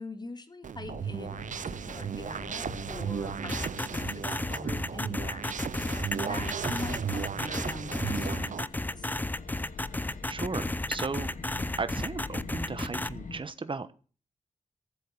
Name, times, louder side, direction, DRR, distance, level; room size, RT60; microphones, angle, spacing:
voice 1, 0.0-5.5 6.1-8.7 9.0-9.1, left 2 dB, 30° left, 8 dB, 2.6 m, -43 dB
sound 1, 0.6-8.6, right 7 dB, 70° right, 0.7 m, -36 dB
sound 2, 0.9-13.4, left 4 dB, 70° left, 2.3 m, -45 dB
sound 3, 3.5-13.1, left 1 dB, 15° left, 0.7 m, -32 dB
voice 2, 9.9-11.3 11.8-13.9, right 4 dB, 40° right, 12 dB, 1.1 m, -36 dB
14.5 x 7.8 x 6.1 m, 0.37 s
wide cardioid pair, 90°, 13 cm